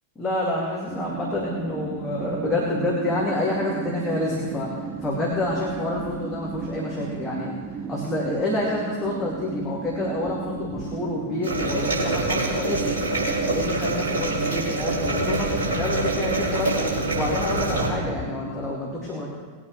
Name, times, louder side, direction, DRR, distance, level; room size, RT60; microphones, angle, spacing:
voice 1, 0.2-4.7 5.0-7.5 7.9-12.9 13.4-16.9 17.1-19.3, left 2 dB, 15° left, -5 dB, 2.6 m, -28 dB
sound 1, 0.9-18.8, right 7 dB, 30° right, 0.6 m, -35 dB
sound 2, 1.3-1.5 2.1-2.2 5.0-8.4 9.0-11.1 11.5-18.3, left 2 dB, 65° left, 2.3 m, -38 dB
sound 3, 11.4-17.9, right 2 dB, 65° right, 3.9 m, -26 dB
20.5 x 8.6 x 3.3 m, 1.6 s
figure-of-eight pair, 90°, 0 cm